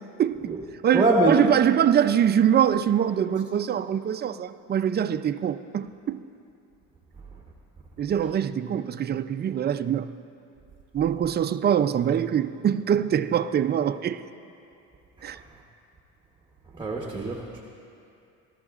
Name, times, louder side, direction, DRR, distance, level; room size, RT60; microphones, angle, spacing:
voice 1, 0.2-0.6 0.8-6.2 8.0-10.1 10.9-14.2 15.2-15.4, right 9 dB, 30° right, 0.4 m, -23 dB
voice 2, 0.9-1.3 16.8-17.6, right 2 dB, 15° right, 1.1 m, -23 dB
18.5 x 13.0 x 2.5 m
cardioid pair, 95°, 34 cm